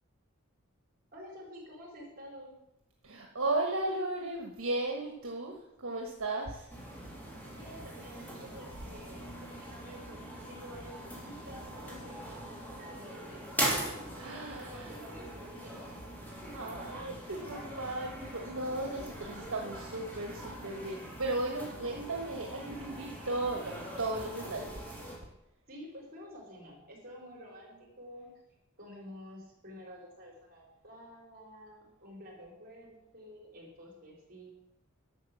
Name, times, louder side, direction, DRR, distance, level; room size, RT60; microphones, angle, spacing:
voice 1, 1.1-2.6 7.5-16.2 25.7-28.3 28.8-34.5, equal, 45° right, -2 dB, 4.4 m, -50 dB
voice 2, 3.0-5.5 5.8-6.7 14.2-14.9 16.5-24.8, right 2 dB, 75° right, 1 dB, 1.4 m, -35 dB
sound 1, 6.7-25.2, right 1 dB, 10° left, 2.9 m, -41 dB
11.5 x 6.4 x 7.4 m, 0.84 s
head